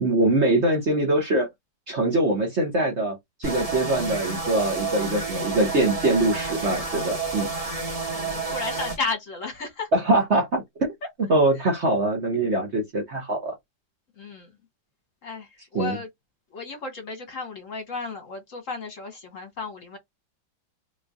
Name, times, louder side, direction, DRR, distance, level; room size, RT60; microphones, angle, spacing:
voice 1, 0.0-1.5 1.9-7.5 9.9-10.9 11.3-13.5 15.7-16.0, right 2 dB, 45° right, 1.0 m, -23 dB
sound 1, 3.4-9.0, right 4 dB, 20° right, 1.5 m, -30 dB
voice 2, 8.1-9.9 14.2-14.5 15.2-16.1 16.5-20.0, left 4 dB, 50° left, 1.3 m, -33 dB
3.8 x 3.1 x 2.5 m
omnidirectional pair, 2.1 m